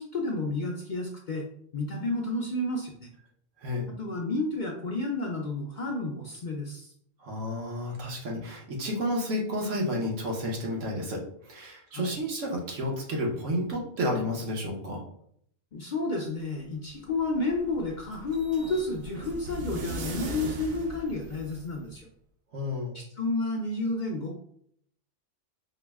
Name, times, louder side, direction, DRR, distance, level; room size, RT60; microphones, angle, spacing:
voice 1, 0.0-1.5 1.7-3.1 4.0-6.9 11.9-12.2 15.7-22.1 22.9-24.5, left 2 dB, 55° left, 0 dB, 0.6 m, -31 dB
voice 2, 7.2-15.1 22.5-23.0, left 1 dB, 80° right, -1 dB, 1.3 m, -31 dB
sound 1, 16.9-21.9, right 2 dB, 60° right, 0.7 m, -39 dB
4.6 x 2.1 x 3.4 m, 0.65 s
omnidirectional pair, 1.3 m